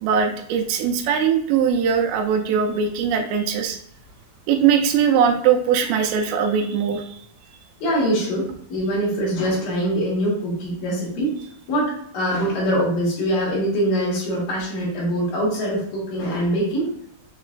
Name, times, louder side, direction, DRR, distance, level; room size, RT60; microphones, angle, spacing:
voice 1, 0.0-3.8 4.5-7.2, right 7 dB, 85° right, 4 dB, 2.8 m, -20 dB
voice 2, 7.8-11.3 11.7-16.9, equal, 60° left, -5 dB, 3.0 m, -23 dB
6.8 x 3.0 x 2.4 m, 0.66 s
omnidirectional pair, 4.9 m